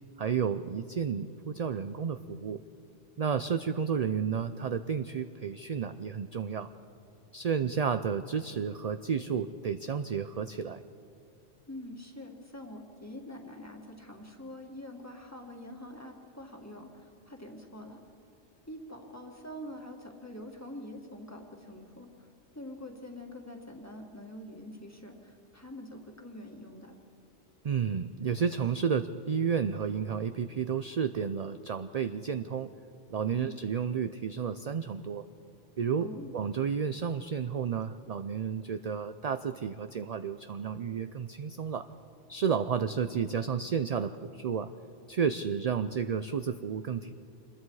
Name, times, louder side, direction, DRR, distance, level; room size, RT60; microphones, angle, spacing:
voice 1, 0.2-2.6 3.2-6.7 7.3-10.8 27.6-32.7 33.1-35.2 35.8-36.1 36.3-41.9 42.3-44.7 45.1-47.1, right 7 dB, 50° right, 10 dB, 0.5 m, -31 dB
voice 2, 11.7-18.0 18.7-22.3 22.5-27.0 33.3-33.5 36.0-36.3, left 1 dB, 15° left, 2 dB, 2.0 m, -45 dB
26.5 x 21.5 x 4.8 m, 2.5 s
omnidirectional pair, 1.2 m